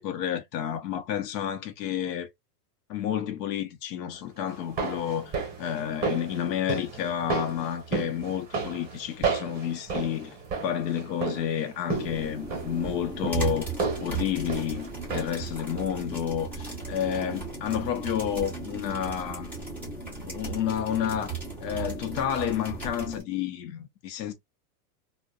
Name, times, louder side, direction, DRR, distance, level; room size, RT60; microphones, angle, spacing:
voice 1, 0.0-2.3 2.9-10.4 10.6-13.7 14.0-19.5 20.2-21.3 21.6-24.3, left 9 dB, 75° left, 0.7 m, -30 dB
sound 1, 4.5-15.5 15.8-15.9, right 4 dB, 20° right, 0.8 m, -33 dB
sound 2, 11.9-23.2, right 4 dB, 5° left, 0.4 m, -36 dB
2.5 x 2.1 x 2.3 m
supercardioid pair, 150°, 49 cm